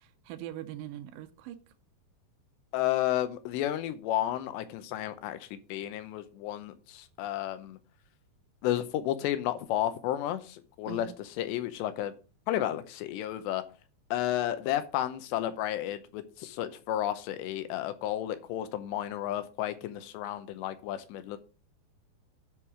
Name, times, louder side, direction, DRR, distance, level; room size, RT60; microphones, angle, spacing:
voice 1, 0.0-1.6 10.9-11.1, right 12 dB, 90° right, 2.0 m, -42 dB
voice 2, 2.7-7.8 8.6-11.1 11.4-12.1 12.5-13.6 14.1-21.4, left 12 dB, 85° left, 3.1 m, -32 dB
10.5 x 4.7 x 4.9 m
omnidirectional pair, 4.8 m